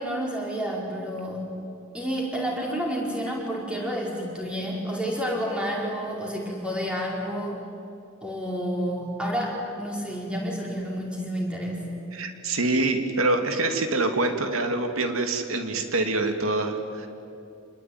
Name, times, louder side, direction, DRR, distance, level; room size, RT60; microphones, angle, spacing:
voice 1, 0.0-1.4 1.9-7.6 8.2-11.9, equal, 5° right, -2 dB, 4.9 m, -30 dB
voice 2, 12.1-17.1, right 2 dB, 80° right, 5 dB, 2.6 m, -25 dB
27.0 x 21.0 x 9.5 m, 2.7 s
head